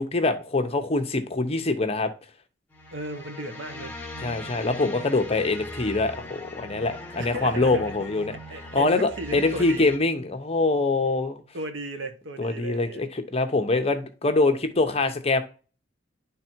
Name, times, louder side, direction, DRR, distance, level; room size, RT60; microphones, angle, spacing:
voice 1, 0.0-2.1 4.2-8.4 8.7-11.4 12.4-15.4, left 3 dB, 30° left, 0.8 m, -24 dB
sound 1, 2.7-10.0, left 2 dB, 10° left, 1.2 m, -40 dB
voice 2, 2.9-4.0 7.2-7.8 8.5-9.9 11.5-13.0, right 1 dB, 70° right, 1.1 m, -35 dB
10.5 x 3.6 x 4.5 m
head